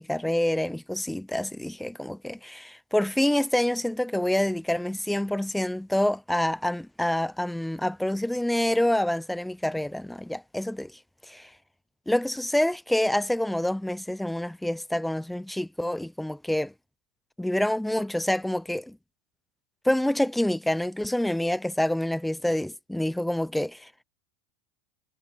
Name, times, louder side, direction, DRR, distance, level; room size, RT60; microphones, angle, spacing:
voice 1, 0.0-10.9 11.3-11.5 12.1-16.7 17.4-19.0 19.8-24.0, left 1 dB, 5° left, 0.5 m, -27 dB
supercardioid pair, 115°, 3 cm